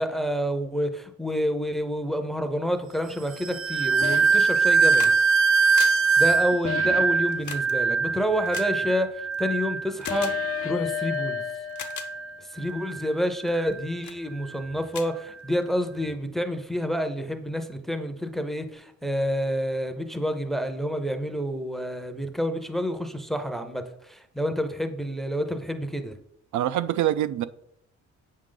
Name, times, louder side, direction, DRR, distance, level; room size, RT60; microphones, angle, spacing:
voice 1, 0.0-5.1 6.2-10.3 10.6-11.4 12.5-26.1, equal, ahead, 0.6 m, -28 dB
sound 1, 3.3-12.3 12.6-13.1 13.6-13.8, right 5 dB, 45° right, 0.8 m, -23 dB
sound 2, 4.0-4.5 6.6-7.3 10.1-12.5, left 11 dB, 50° left, 0.4 m, -32 dB
sound 3, 4.5-5.2 5.5-9.4 10.0-10.4 11.1-11.2 11.6-12.1 12.7-12.9 13.5-13.7 14.0-14.2 14.6-14.7 14.9-15.8 17.0-17.1, left 9 dB, 70° left, 1.0 m, -39 dB
voice 2, 26.5-27.4, right 12 dB, 75° right, 0.5 m, -24 dB
8.2 x 6.4 x 3.8 m
cardioid pair, 165°, 30 cm